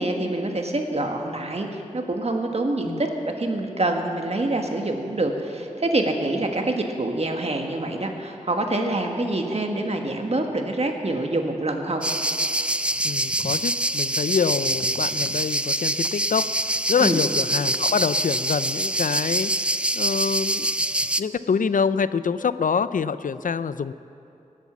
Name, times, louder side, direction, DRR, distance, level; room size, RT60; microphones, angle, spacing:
voice 1, 0.0-3.1 3.4-12.0 17.0-17.2, right 2 dB, 50° right, 3 dB, 1.5 m, -26 dB
sound 1, 12.0-21.2, right 1 dB, 10° right, 0.3 m, -25 dB
voice 2, 13.0-20.7 21.2-23.9, left 6 dB, 85° left, 15 dB, 0.4 m, -26 dB
19.0 x 8.2 x 7.3 m, 2.9 s
wide cardioid pair, 70°, 13 cm